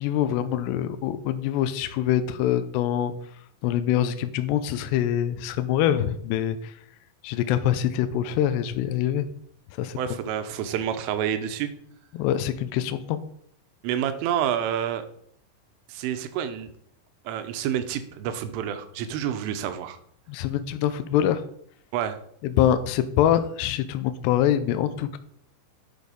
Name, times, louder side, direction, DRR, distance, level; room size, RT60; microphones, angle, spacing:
voice 1, 0.0-3.1 3.6-6.7 7.2-9.3 9.8-10.0 12.1-13.2 20.3-21.4 22.4-25.2, left 11 dB, 90° left, 10 dB, 2.5 m, -24 dB
voice 2, 10.0-11.7 13.8-15.1 15.9-16.7 17.3-20.0 21.9-22.2, right 9 dB, 85° right, 9 dB, 3.4 m, -28 dB
10.5 x 6.7 x 5.2 m, 0.65 s
omnidirectional pair, 5.7 m